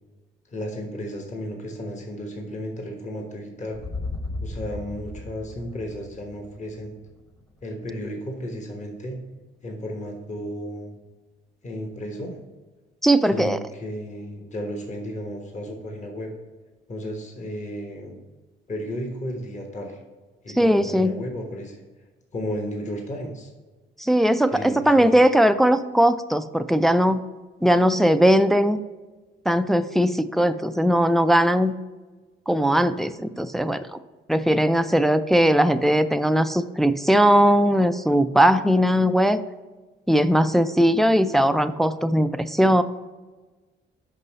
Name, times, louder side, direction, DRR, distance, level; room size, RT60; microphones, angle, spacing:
voice 1, 0.5-3.8 4.4-6.9 7.6-9.2 9.6-11.0 11.6-12.4 13.3-16.3 16.9-18.2 18.7-20.0 20.4-21.8 22.3-23.5 24.5-25.3, equal, 35° left, 2 dB, 1.2 m, -33 dB
sound 1, 3.7-7.8, left 2 dB, 20° left, 1.0 m, -36 dB
voice 2, 13.0-13.6 20.6-21.2 24.0-27.2 27.6-28.8 29.5-31.7 32.5-34.0 34.3-39.4 40.1-42.8, equal, ahead, 9 dB, 0.3 m, -19 dB
5.4 x 5.4 x 4.0 m, 1.3 s
cardioid pair, 90°, 20 cm